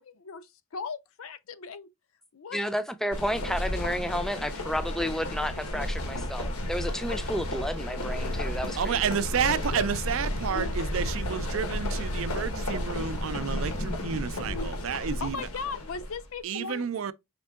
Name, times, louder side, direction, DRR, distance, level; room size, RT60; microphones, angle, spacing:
voice 1, 0.0-1.9 2.3-2.6 7.1-7.2 9.4-9.9 10.9-11.2 15.2-16.8, left 5 dB, 75° left, 0.5 m, -38 dB
voice 2, 2.5-9.1, equal, ahead, 0.3 m, -31 dB
sound 1, 3.1-16.2, left 1 dB, 90° left, 1.0 m, -32 dB
voice 3, 8.8-15.4 16.4-17.1, right 7 dB, 70° right, 0.4 m, -30 dB
5.2 x 3.6 x 2.3 m
head